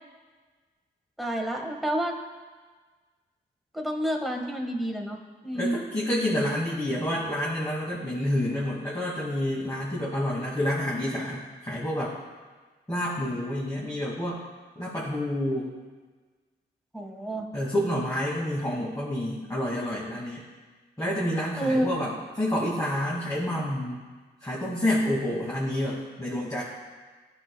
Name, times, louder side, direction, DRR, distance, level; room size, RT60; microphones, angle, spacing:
voice 1, 1.2-2.1 3.7-5.8 16.9-17.5 21.6-21.9, right 1 dB, ahead, 1 dB, 1.5 m, -29 dB
voice 2, 5.5-12.1 12.9-14.4 14.8-15.7 17.5-20.5 21.0-24.0 24.4-26.6, left 1 dB, 15° left, -7 dB, 2.1 m, -28 dB
12.5 x 5.1 x 2.2 m, 1.4 s
supercardioid pair, 45°, 21 cm